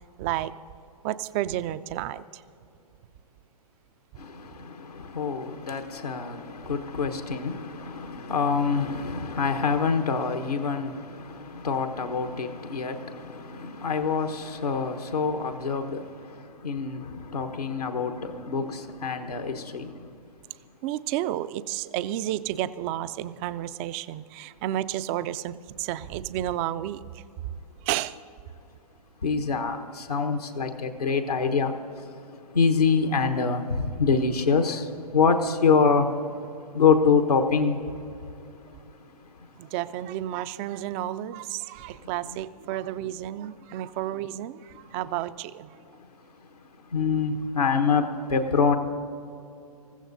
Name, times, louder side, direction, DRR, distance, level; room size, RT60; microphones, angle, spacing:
voice 1, 0.2-0.5 1.0-2.4 20.8-27.2 27.8-28.2 39.6-45.7, right 13 dB, 20° right, 0.3 m, -31 dB
voice 2, 5.1-6.4 6.7-10.9 11.6-13.1 13.5-16.0 16.6-17.0 17.3-19.9 29.2-29.8 30.1-31.7 32.5-33.7 34.0-34.8 35.1-36.0 36.7-37.8 46.9-48.0 48.3-48.8, left 5 dB, 85° left, 1.1 m, -25 dB
27.0 x 15.0 x 2.7 m
figure-of-eight pair, 125°, 20 cm